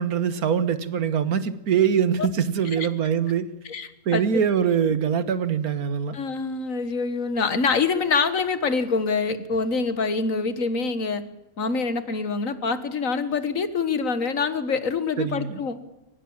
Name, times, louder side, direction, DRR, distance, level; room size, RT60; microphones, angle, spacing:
voice 1, 0.0-3.5 4.1-6.2 15.2-15.6, right 7 dB, 90° right, 14 dB, 1.8 m, -23 dB
voice 2, 3.7-4.2 6.1-11.2 11.6-15.8, left 4 dB, 65° left, 13 dB, 1.9 m, -25 dB
23.5 x 19.5 x 7.3 m, 0.97 s
omnidirectional pair, 1.5 m